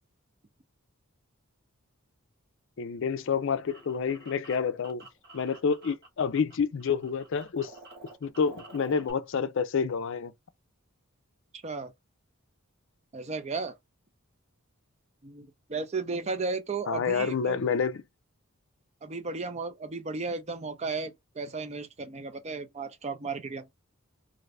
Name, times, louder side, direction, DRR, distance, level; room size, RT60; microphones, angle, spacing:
voice 1, 2.8-5.0 5.3-7.7 8.2-10.3 16.9-18.0, left 6 dB, 60° left, 0.4 m, -28 dB
sound 1, 3.2-6.5 6.8-9.1, right 2 dB, 50° right, 1.1 m, -50 dB
voice 2, 11.5-11.9 13.1-13.7 15.2-17.6 19.0-23.7, right 4 dB, 30° right, 0.5 m, -34 dB
2.6 x 2.5 x 3.2 m
head